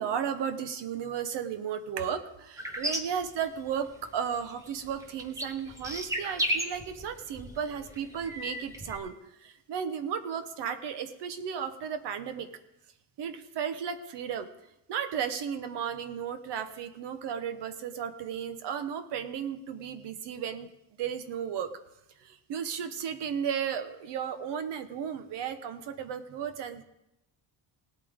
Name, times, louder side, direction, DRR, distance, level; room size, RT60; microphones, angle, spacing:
voice 1, 0.0-9.1 9.4-12.5 13.2-14.5 14.9-20.7 21.0-21.7 22.2-26.8, right 8 dB, 70° right, 10 dB, 1.1 m, -34 dB
sound 1, 2.6-4.1 4.3-9.0, equal, 5° right, 1.0 m, -35 dB
18.5 x 8.7 x 3.6 m, 0.87 s
cardioid pair, 160°, 44 cm